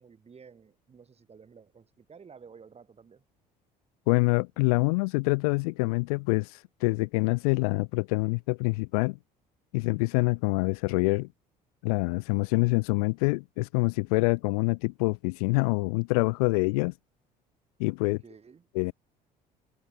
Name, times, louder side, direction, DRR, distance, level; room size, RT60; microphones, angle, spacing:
voice 1, 0.0-3.2 18.2-18.7, right 6 dB, 30° right, 4.3 m, -52 dB
voice 2, 4.1-9.2 9.7-11.3 11.8-16.9 17.8-18.2 18.7-18.9, left 27 dB, 60° left, 0.4 m, -26 dB
figure-of-eight pair, 55°, 21 cm